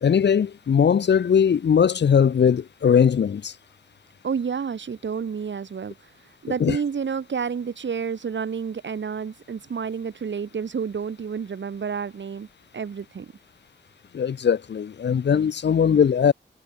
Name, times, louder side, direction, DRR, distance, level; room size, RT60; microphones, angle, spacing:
voice 1, 0.0-3.5 6.6-6.8 14.1-16.3, left 7 dB, 70° left, 0.7 m, -20 dB
voice 2, 4.2-5.9 6.4-12.5 12.7-13.3, right 6 dB, 75° right, 3.0 m, -29 dB
cardioid pair, 50°, 19 cm